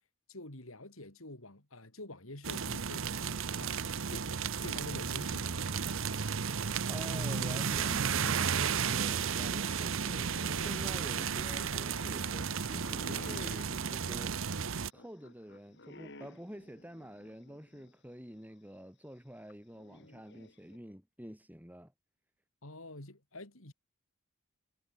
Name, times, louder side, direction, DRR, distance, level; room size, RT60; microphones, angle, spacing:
voice 1, 0.3-5.5 22.6-23.7, left 1 dB, 70° left, 4.2 m, -47 dB
sound 1, 2.4-14.9, right 6 dB, 65° right, 0.8 m, -33 dB
sound 2, 5.6-17.9 18.3-18.4 19.5-20.8, left 2 dB, 55° left, 3.1 m, -53 dB
voice 2, 6.9-14.7 14.9-21.9, equal, 10° right, 3.6 m, -48 dB
head